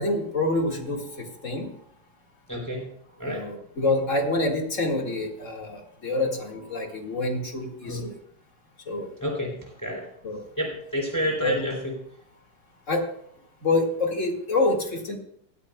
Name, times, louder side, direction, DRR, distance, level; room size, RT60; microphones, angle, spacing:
voice 1, 0.0-1.7 3.2-8.1 8.9-9.1 10.2-10.4 11.4-11.6 12.9-13.0 13.6-15.2, left 2 dB, 35° left, 1 dB, 2.2 m, -27 dB
voice 2, 2.5-2.9 3.2-3.4 7.8-8.1 9.2-10.1 10.6-11.9, equal, 10° left, 0 dB, 3.4 m, -29 dB
19.5 x 12.5 x 2.3 m, 0.68 s
omnidirectional pair, 2.4 m